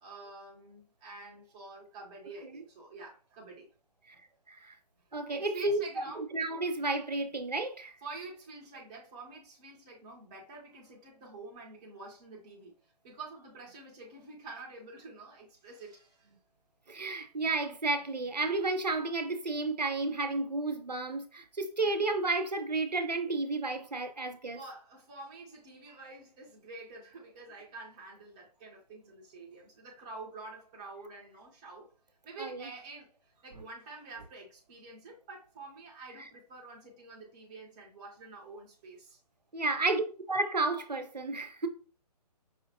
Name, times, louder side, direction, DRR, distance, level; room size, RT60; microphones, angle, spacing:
voice 1, 0.0-3.7 5.3-6.3 8.0-16.3 21.8-22.0 24.6-31.9 32.2-39.2, right 3 dB, 10° right, 0.3 m, -48 dB
voice 2, 5.1-5.8 6.2-7.9 16.9-24.6 32.4-32.7 36.2-36.3 39.5-41.7, right 2 dB, 80° right, 0.7 m, -32 dB
5.0 x 2.5 x 2.6 m
figure-of-eight pair, 135°, 21 cm